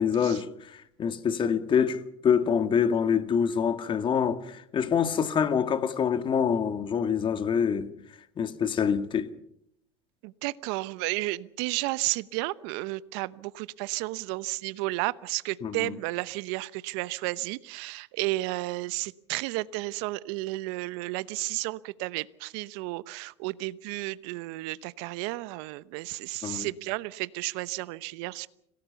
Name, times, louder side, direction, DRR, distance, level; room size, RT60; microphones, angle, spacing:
voice 1, 0.0-7.9 8.4-9.3 15.6-15.9 26.4-26.7, left 7 dB, 35° left, 2.0 m, -26 dB
voice 2, 10.2-28.5, right 21 dB, 65° right, 0.9 m, -32 dB
26.5 x 17.5 x 7.0 m
hypercardioid pair, 90°, 14 cm